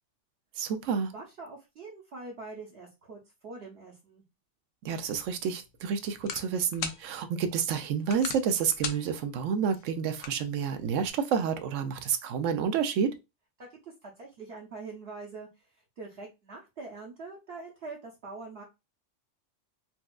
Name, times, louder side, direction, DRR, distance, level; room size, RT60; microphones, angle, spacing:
voice 1, 0.6-1.1 4.8-13.1, right 7 dB, 85° right, 0.9 m, -29 dB
voice 2, 1.1-4.2 13.6-18.6, right 3 dB, 60° right, 0.9 m, -44 dB
sound 1, 5.0-11.1, left 6 dB, 85° left, 1.0 m, -42 dB
4.3 x 2.3 x 2.3 m
omnidirectional pair, 1.3 m